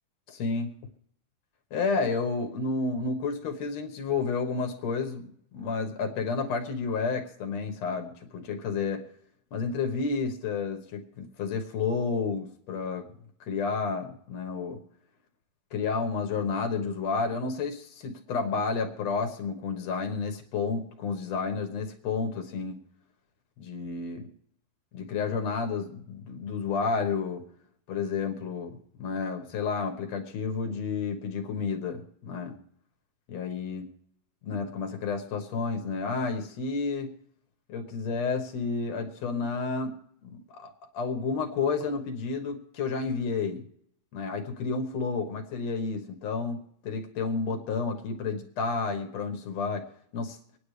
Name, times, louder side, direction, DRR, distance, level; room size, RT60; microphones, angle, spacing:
voice 1, 0.3-0.7 1.7-9.0 9.5-13.1 13.4-14.8 15.7-22.8 23.6-24.3 24.9-27.4 27.9-32.5 33.3-33.9 34.4-37.1 37.7-40.0 40.2-43.6 44.1-49.9 50.1-50.4, left 4 dB, 55° left, 4 dB, 2.1 m, -31 dB
25.5 x 10.0 x 3.3 m, 0.69 s
omnidirectional pair, 4.3 m